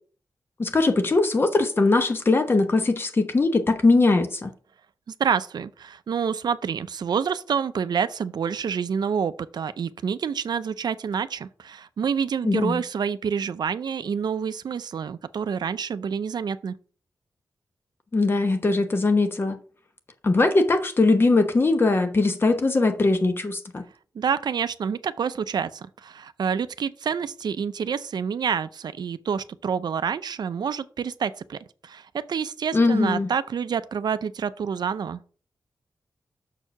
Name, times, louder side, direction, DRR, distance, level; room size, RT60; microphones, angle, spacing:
voice 1, 0.6-4.5 12.4-12.8 18.1-19.6 20.2-23.8 32.7-33.3, left 3 dB, 30° left, 1.0 m, -21 dB
voice 2, 5.2-16.7 24.1-35.2, right 7 dB, 75° right, 0.5 m, -28 dB
6.7 x 4.5 x 6.0 m
wide cardioid pair, 175°, 7 cm